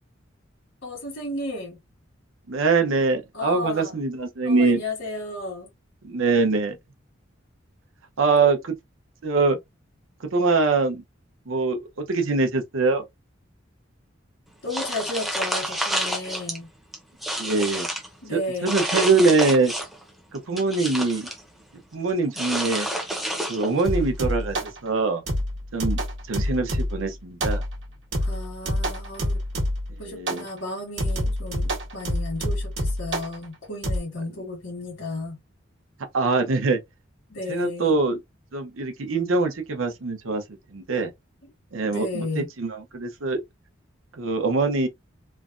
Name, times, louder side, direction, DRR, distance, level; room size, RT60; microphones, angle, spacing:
voice 1, 0.8-1.8 3.3-3.9 4.4-5.7 14.6-16.7 18.2-18.8 28.2-29.4 30.0-35.4 37.3-38.0 41.8-42.5, left 2 dB, 80° left, 1.3 m, -33 dB
voice 2, 2.5-4.8 6.0-6.8 8.2-8.7 9.2-9.6 10.2-11.0 11.5-13.0 17.4-17.9 18.3-19.7 20.3-21.3 21.9-22.9 23.5-25.2 25.7-26.0 26.3-27.6 29.9-30.5 36.0-36.8 37.5-38.2 38.5-41.1 41.7-43.4 44.2-44.9, right 3 dB, 85° right, 0.7 m, -23 dB
sound 1, 14.7-16.6 16.9-18.1 18.7-20.0 20.3-21.4 22.3-23.9, right 1 dB, ahead, 0.5 m, -29 dB
sound 2, 23.8-24.8 25.3-27.1 27.4-27.8 28.1-29.9 30.3-30.5 31.0-33.4 33.8-34.0, equal, 60° right, 1.0 m, -27 dB
3.1 x 2.1 x 2.5 m
head